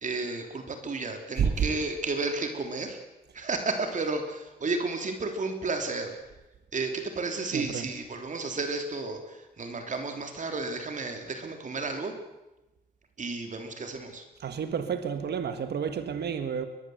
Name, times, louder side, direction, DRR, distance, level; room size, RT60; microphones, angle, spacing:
voice 1, 0.0-3.0 3.3-6.2 6.7-12.1 13.2-14.2, right 3 dB, 45° right, 3.2 m, -32 dB
voice 2, 7.5-7.8 14.4-16.7, right 7 dB, 75° right, 1.6 m, -30 dB
23.0 x 20.5 x 7.9 m
cardioid pair, 105°, 17 cm